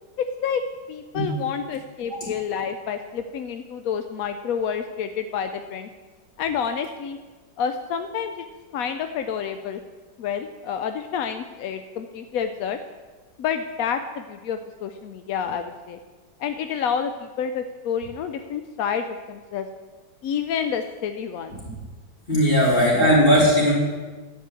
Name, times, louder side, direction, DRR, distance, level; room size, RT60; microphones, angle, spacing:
voice 1, 0.2-0.6 0.9-5.9 6.4-7.2 7.6-8.3 8.7-9.8 10.2-12.8 13.4-16.0 16.4-19.7 20.2-21.6, left 7 dB, 70° left, 8 dB, 0.8 m, -29 dB
voice 2, 22.3-23.7, equal, 25° left, -6 dB, 4.0 m, -17 dB
11.0 x 5.5 x 8.1 m, 1.3 s
omnidirectional pair, 2.0 m